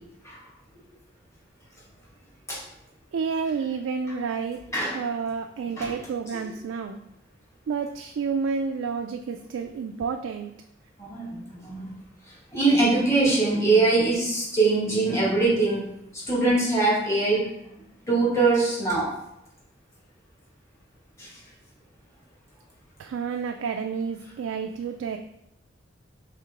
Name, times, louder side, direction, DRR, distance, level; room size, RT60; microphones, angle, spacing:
voice 1, 3.1-4.6 4.9-7.0 7.7-10.5 23.0-25.2, right 5 dB, 90° right, 5 dB, 0.3 m, -30 dB
voice 2, 11.0-11.9 12.5-15.9 16.1-17.7 18.1-19.1 21.2-21.3, right 3 dB, 15° left, -6 dB, 1.4 m, -23 dB
4.8 x 3.6 x 2.9 m, 0.84 s
head